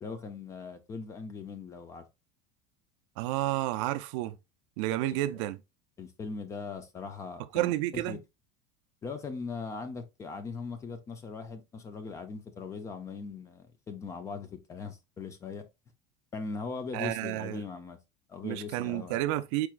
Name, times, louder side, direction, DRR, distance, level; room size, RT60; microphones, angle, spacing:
voice 1, 0.0-2.1 5.3-5.4 6.0-8.2 9.0-15.7 16.3-18.0 18.3-19.2, left 4 dB, 15° left, 0.5 m, -40 dB
voice 2, 3.2-4.4 4.8-5.6 7.5-8.2 16.9-17.7 18.4-19.7, right 15 dB, 55° right, 0.4 m, -30 dB
4.6 x 4.5 x 2.4 m
cardioid pair, 175°, 18 cm